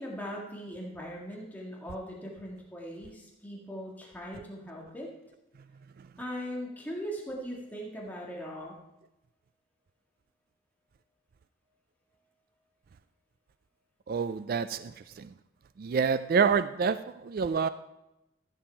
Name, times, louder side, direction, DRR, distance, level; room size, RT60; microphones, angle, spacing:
voice 1, 0.0-5.1 6.2-8.8, equal, 10° left, 1.8 m, -40 dB
voice 2, 14.1-14.9 15.2-15.3 15.8-17.7, right 6 dB, 45° right, 0.3 m, -27 dB
14.5 x 7.8 x 4.5 m
head